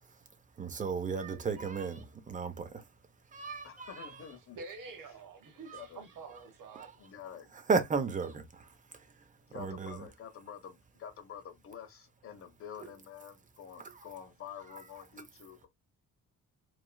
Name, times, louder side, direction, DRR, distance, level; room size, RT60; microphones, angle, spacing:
voice 1, 0.6-2.8 3.3-4.1 5.7-5.8 6.8-6.9 7.7-8.7 9.5-10.1 13.8-13.9, right 5 dB, 20° right, 0.5 m, -34 dB
voice 2, 3.6-4.6 5.7-6.0 7.0-7.5 9.5-15.7, left 8 dB, 40° left, 0.7 m, -48 dB
voice 3, 4.5-6.9, right 4 dB, 60° right, 1.2 m, -47 dB
3.1 x 2.3 x 2.2 m
cardioid pair, 160°, 35 cm